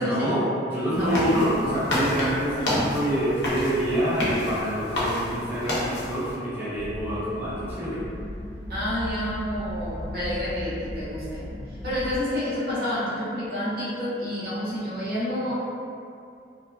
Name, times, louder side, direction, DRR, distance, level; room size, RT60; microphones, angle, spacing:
voice 1, 0.0-8.0, equal, 10° right, -11 dB, 0.5 m, -27 dB
sound 1, 0.9-6.3, left 1 dB, 80° left, 0.7 m, -29 dB
voice 2, 0.9-1.6 8.7-15.5, equal, 60° right, -9 dB, 0.8 m, -29 dB
sound 2, 6.7-12.2, equal, 30° right, 1.1 m, -36 dB
2.7 x 2.2 x 2.2 m, 2.5 s
head